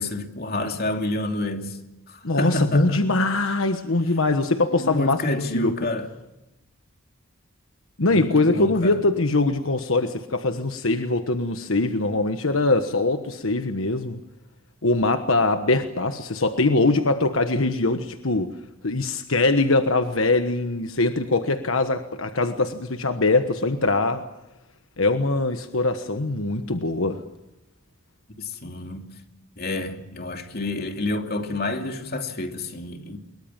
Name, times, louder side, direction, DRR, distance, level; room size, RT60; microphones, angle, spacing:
voice 1, 0.0-1.8 2.1-3.2 4.8-6.1 8.1-9.0 28.4-29.1 29.6-33.2, left 2 dB, 50° left, 2.8 m, -28 dB
voice 2, 2.2-5.2 5.5-5.7 8.0-14.2 14.8-18.5 18.8-24.2 25.0-27.2, left 2 dB, 85° left, 1.3 m, -22 dB
24.0 x 22.5 x 7.4 m
head